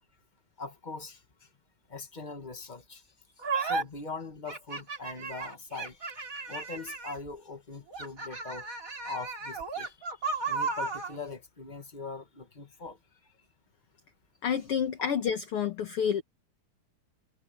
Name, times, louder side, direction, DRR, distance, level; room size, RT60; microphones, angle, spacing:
voice 1, 0.6-1.5 1.9-8.7 9.0-13.3, left 3 dB, 25° left, 0.9 m, -42 dB
sound 1, 3.4-3.8 4.5-7.3 7.9-11.1, right 4 dB, 25° right, 3.8 m, -34 dB
voice 2, 14.4-16.2, left 8 dB, 55° left, 1.9 m, -29 dB
omnidirectional pair, 3.6 m